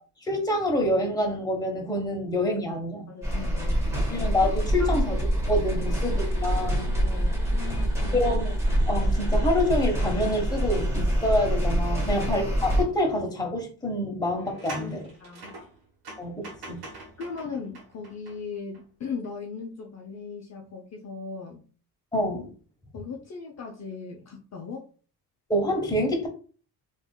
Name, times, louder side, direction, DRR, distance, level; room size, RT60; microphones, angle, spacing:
voice 1, 0.2-3.1 4.1-5.2 5.5-6.9 8.1-8.5 8.9-15.0 16.2-16.8 22.1-22.5 25.5-26.3, left 1 dB, 10° left, 1 dB, 1.0 m, -27 dB
voice 2, 3.1-4.1 4.8-5.0 5.7-5.9 7.0-8.2 12.0-12.3 14.8-15.6 17.2-21.6 22.9-24.9, left 5 dB, 40° left, 0 dB, 0.6 m, -38 dB
sound 1, 3.2-12.8, right 1 dB, 5° right, 1.2 m, -25 dB
sound 2, 12.9-13.0 14.3-18.8 19.2-19.3, right 2 dB, 70° right, 1.1 m, -44 dB
3.4 x 2.6 x 2.2 m, 0.39 s
cardioid pair, 90°, 39 cm